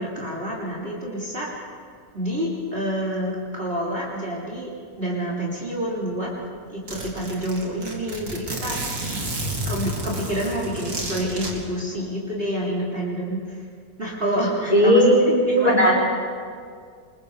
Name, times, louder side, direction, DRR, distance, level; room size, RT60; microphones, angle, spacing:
voice 1, 0.0-1.5 2.1-4.7 5.0-6.3 6.7-8.7 9.7-13.6 14.0-15.0 15.4-15.9, equal, 30° right, -5 dB, 3.8 m, -28 dB
Zipper (clothing), 6.1-6.2 6.4-6.5 6.9-11.5, right 1 dB, 50° right, 3.3 m, -30 dB
voice 2, 14.7-15.9, equal, 20° left, -3 dB, 5.6 m, -16 dB
27.5 x 22.0 x 5.0 m, 2.1 s
omnidirectional pair, 2.0 m